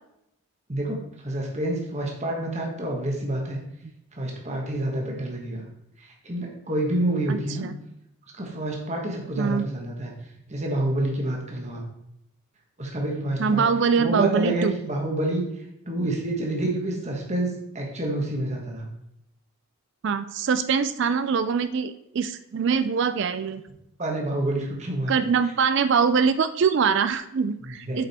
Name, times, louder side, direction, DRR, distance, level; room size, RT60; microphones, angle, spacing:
voice 1, 0.7-3.6 4.1-5.7 6.2-7.7 8.4-10.1 10.5-11.8 12.8-13.6 13.9-15.4 15.9-18.9 24.0-25.1 27.6-28.0, right 1 dB, 30° right, 0 dB, 1.3 m, -28 dB
voice 2, 7.3-7.7 9.4-9.7 13.4-14.8 20.0-23.6 25.1-28.0, right 6 dB, 55° right, 12 dB, 0.3 m, -23 dB
7.9 x 5.1 x 4.2 m, 0.81 s
head